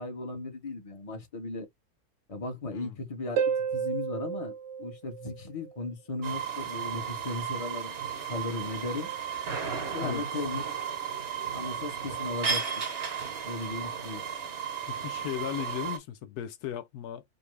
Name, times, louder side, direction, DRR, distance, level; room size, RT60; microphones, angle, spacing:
voice 1, 0.0-1.7 2.3-3.4 3.7-4.5 4.8-7.9 8.3-9.1 9.9-10.7 11.5-12.6 13.4-14.2, left 2 dB, 25° left, 1.1 m, -36 dB
Harp, 3.4-5.9 9.4-9.5, right 7 dB, 65° right, 0.8 m, -31 dB
sound 1, 6.2-16.0, right 7 dB, 45° right, 1.1 m, -34 dB
voice 2, 14.8-17.2, left 10 dB, 80° left, 1.1 m, -36 dB
5.3 x 2.3 x 3.2 m
omnidirectional pair, 1.6 m